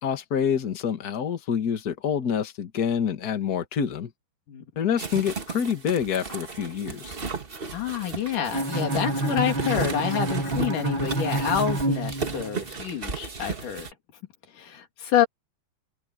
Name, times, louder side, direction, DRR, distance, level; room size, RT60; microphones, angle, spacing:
voice 1, 0.0-4.1 4.7-7.2, left 8 dB, 40° left, 1.6 m, -27 dB
sound 1, 5.0-13.9, right 5 dB, 80° right, 0.5 m, -35 dB
voice 2, 7.7-13.9 14.5-15.3, left 9 dB, 80° left, 4.3 m, -27 dB
Bowed string instrument, 8.5-12.7, right 2 dB, 35° right, 7.7 m, -28 dB
omnidirectional pair, 3.6 m